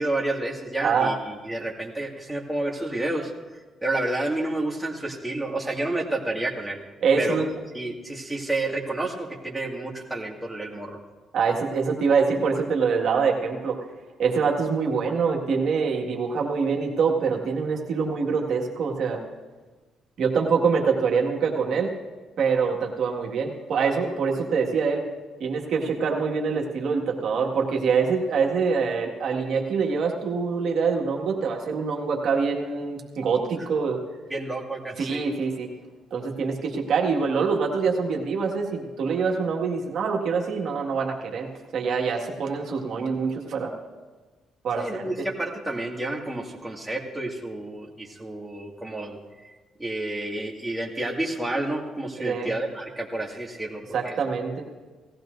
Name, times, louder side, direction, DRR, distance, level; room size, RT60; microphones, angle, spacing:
voice 1, 0.0-6.8 7.2-7.4 7.7-10.9 34.3-35.2 44.8-49.2 49.8-54.2, right 2 dB, 5° right, -1 dB, 2.1 m, -30 dB
voice 2, 0.8-1.1 7.0-7.5 11.3-13.8 14.2-19.2 20.2-21.9 22.4-25.0 25.4-34.0 35.0-35.7 36.1-41.5 41.7-43.7 44.6-45.0 52.2-52.5 53.9-54.6, right 5 dB, 70° right, -1 dB, 1.9 m, -25 dB
18.5 x 15.0 x 2.6 m, 1.3 s
cardioid pair, 90°, 0 cm